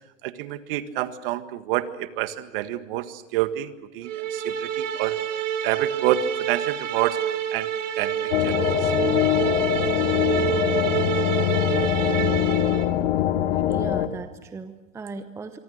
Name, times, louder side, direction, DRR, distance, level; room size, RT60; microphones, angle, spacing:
voice 1, 0.2-5.2 5.6-7.2 7.5-7.7 8.0-8.6, right 14 dB, 45° right, 11 dB, 1.7 m, -28 dB
sound 1, 4.0-12.9, right 9 dB, 70° right, 2.3 m, -28 dB
sound 2, 8.3-14.1, left 11 dB, 55° left, 1.8 m, -23 dB
voice 2, 13.5-15.6, right 4 dB, 5° right, 10 dB, 0.8 m, -37 dB
26.5 x 24.5 x 6.5 m, 1.0 s
hypercardioid pair, 130°, 39 cm